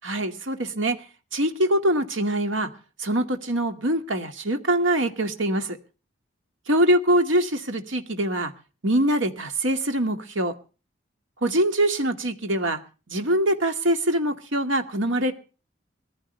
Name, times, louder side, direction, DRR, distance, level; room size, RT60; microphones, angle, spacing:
voice 1, 0.0-1.0 1.3-2.7 3.0-5.8 6.7-8.5 8.8-10.5 11.4-12.8 13.1-15.3, right 1 dB, 75° right, 6 dB, 2.2 m, -23 dB
21.5 x 15.0 x 3.4 m, 0.35 s
head